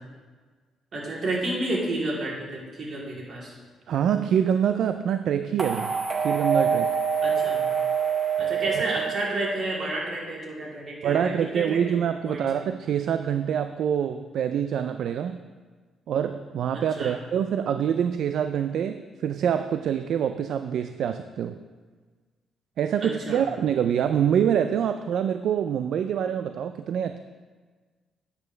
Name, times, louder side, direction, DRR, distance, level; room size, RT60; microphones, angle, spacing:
voice 1, 0.9-3.5 7.2-7.6 8.4-12.6 17.0-17.1 23.0-23.4, right 1 dB, 50° right, -4 dB, 3.1 m, -31 dB
voice 2, 3.9-5.9 6.2-7.0 11.0-15.4 16.1-21.6 22.8-27.2, right 8 dB, 70° right, 9 dB, 0.3 m, -25 dB
sound 1, 5.6-9.8, right 6 dB, 35° right, 1.0 m, -26 dB
10.5 x 8.3 x 3.3 m, 1.4 s
cardioid pair, 90°, 0 cm